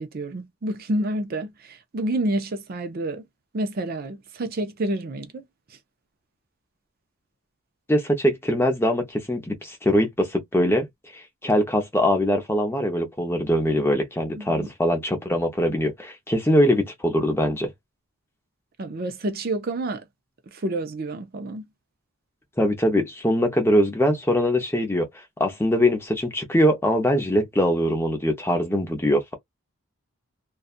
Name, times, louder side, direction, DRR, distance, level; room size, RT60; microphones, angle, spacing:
voice 1, 0.0-3.3 3.5-5.4 5.7-5.8 14.3-14.7 18.8-20.0 20.5-21.6, right 1 dB, 45° right, 0.5 m, -29 dB
voice 2, 7.9-10.9 11.4-17.7 22.6-25.1 25.4-29.3, equal, 10° left, 0.7 m, -22 dB
2.6 x 2.3 x 2.5 m
head